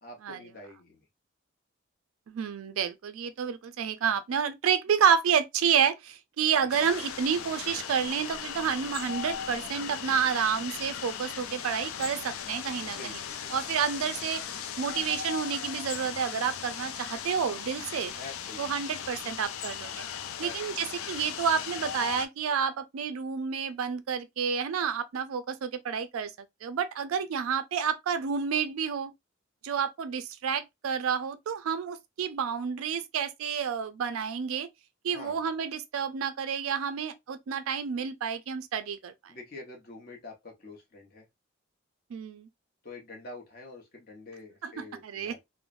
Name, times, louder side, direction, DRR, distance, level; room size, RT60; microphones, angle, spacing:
voice 1, 0.0-1.0 6.6-6.7 12.9-13.8 18.1-18.7 20.4-20.8 35.1-35.4 39.3-41.3 42.8-45.4, left 2 dB, 45° left, 0.8 m, -46 dB
voice 2, 2.3-13.2 13.5-14.4 14.8-18.1 18.6-20.1 20.4-26.3 26.6-29.1 29.6-34.7 35.0-39.1 42.1-42.5 44.6-45.3, right 7 dB, 85° right, 0.4 m, -29 dB
sound 1, 6.7-22.3, left 8 dB, 85° left, 0.4 m, -38 dB
3.1 x 2.0 x 2.4 m
head